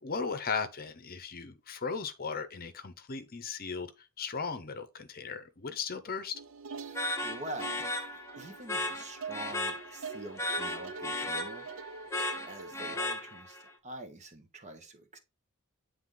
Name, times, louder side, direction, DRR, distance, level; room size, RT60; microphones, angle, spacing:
voice 1, 0.0-3.9 4.2-6.4, left 5 dB, 45° left, 0.8 m, -36 dB
sound 1, 6.3-12.7, right 5 dB, 65° right, 0.6 m, -45 dB
voice 2, 6.8-12.1 12.5-15.2, right 1 dB, 35° right, 1.1 m, -46 dB
sound 2, 6.9-13.7, left 1 dB, 15° left, 0.8 m, -36 dB
9.2 x 3.4 x 3.8 m
head